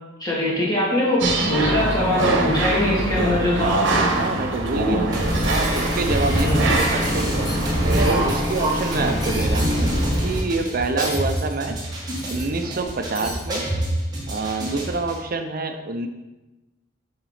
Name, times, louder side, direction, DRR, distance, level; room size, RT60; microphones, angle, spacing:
voice 1, 0.2-3.8 6.4-6.6, left 1 dB, 20° left, -6 dB, 2.1 m, -22 dB
sound 1, 1.2-8.3, right 2 dB, 70° right, 1.2 m, -23 dB
voice 2, 3.9-5.1 5.4-7.7 8.0-11.8 12.3-13.6 14.3-16.1, right 3 dB, 50° right, 6 dB, 0.6 m, -27 dB
sound 2, 5.1-15.1, equal, 20° right, 1.6 m, -24 dB
Cutlery silverware, 5.4-5.8 6.2-6.8 7.1-8.7 9.0-9.8 10.1-10.4 11.0-11.6 12.0-12.9 13.2-13.4, left 1 dB, 50° left, 1.9 m, -38 dB
7.3 x 4.0 x 4.9 m, 1.1 s
head